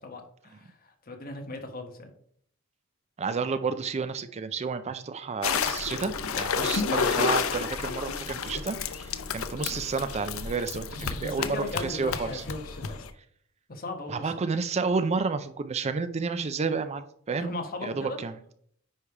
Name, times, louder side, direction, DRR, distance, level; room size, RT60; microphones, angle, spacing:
voice 1, 0.0-2.1 6.6-6.7 10.9-13.1 13.7-14.5 17.4-18.2, left 2 dB, 45° left, 4 dB, 1.3 m, -38 dB
voice 2, 3.2-10.9 11.2-12.4 14.1-17.5 17.8-18.3, right 4 dB, 30° right, 11 dB, 0.4 m, -30 dB
sound 1, 5.4-13.1, left 6 dB, 85° left, 0.6 m, -31 dB
9.9 x 3.4 x 4.7 m, 0.64 s
head